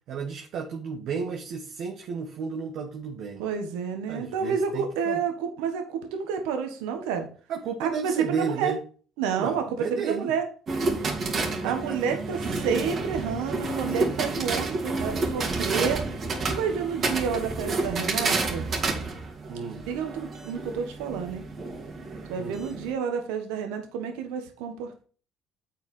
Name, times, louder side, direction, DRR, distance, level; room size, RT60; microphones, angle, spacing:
voice 1, 0.1-3.4 4.1-5.2 7.5-8.8 9.4-10.3 11.6-12.7 13.2-13.4 19.5-19.8 22.4-22.6, right 5 dB, 70° right, 1 dB, 1.3 m, -33 dB
voice 2, 3.4-7.3 7.8-8.7 9.2-10.4 11.6-16.0 16.5-18.7 19.9-21.4 22.3-25.0, right 6 dB, 85° right, 5 dB, 1.4 m, -29 dB
sound 1, 10.7-22.9, right 3 dB, 50° right, 2.4 m, -30 dB
7.7 x 5.0 x 5.4 m, 0.40 s
supercardioid pair, 80°, 0 cm